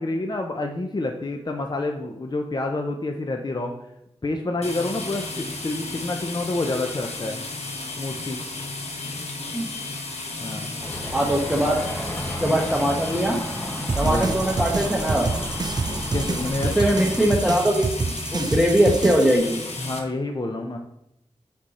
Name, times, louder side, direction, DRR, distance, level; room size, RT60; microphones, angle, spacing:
voice 1, 0.0-3.7 4.2-7.4 8.0-8.4 10.4-10.7 14.0-14.4 15.9-17.0 19.8-20.8, left 2 dB, 40° left, 3 dB, 0.6 m, -28 dB
sound 1, 4.6-20.0, left 3 dB, 70° left, 1.0 m, -33 dB
sound 2, 10.8-17.3, equal, 15° left, 1.2 m, -34 dB
voice 2, 11.1-11.8 12.4-13.4 14.0-15.3 16.8-19.6, equal, 5° right, 0 dB, 1.0 m, -21 dB
sound 3, 13.9-19.4, right 4 dB, 35° right, 0.3 m, -27 dB
5.3 x 5.2 x 4.2 m, 0.83 s
cardioid pair, 50°, 11 cm